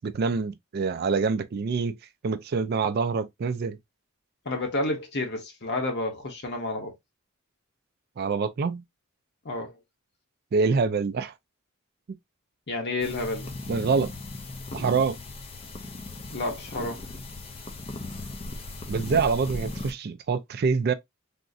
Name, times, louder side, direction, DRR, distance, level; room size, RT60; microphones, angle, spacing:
voice 1, 0.0-2.0 2.2-3.8 8.2-8.8 10.5-11.3 12.1-12.2 13.7-14.1 14.7-15.2 18.9-20.9, right 5 dB, 45° right, 0.3 m, -26 dB
voice 2, 4.4-6.9 9.4-9.8 12.7-13.5 16.3-17.1, left 2 dB, 50° left, 0.8 m, -30 dB
sound 1, 13.0-19.9, left 2 dB, 25° left, 0.4 m, -37 dB
3.6 x 2.0 x 2.5 m
head